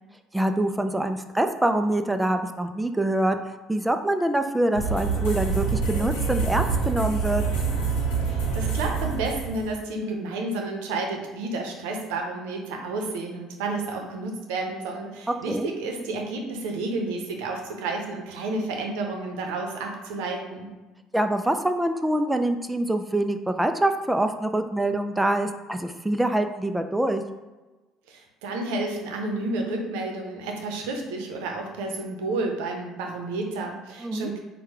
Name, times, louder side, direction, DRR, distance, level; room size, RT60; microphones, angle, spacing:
voice 1, 0.3-3.4 3.7-7.4 15.3-15.7 21.1-27.2 34.0-34.3, right 1 dB, 10° right, 7 dB, 0.4 m, -25 dB
sound 1, 4.8-9.8, right 5 dB, 80° left, 0.8 m, -26 dB
voice 2, 8.2-20.7 28.1-34.4, right 2 dB, 80° right, 2 dB, 0.7 m, -31 dB
4.5 x 2.3 x 4.7 m, 1.2 s
hypercardioid pair, 70°, 0 cm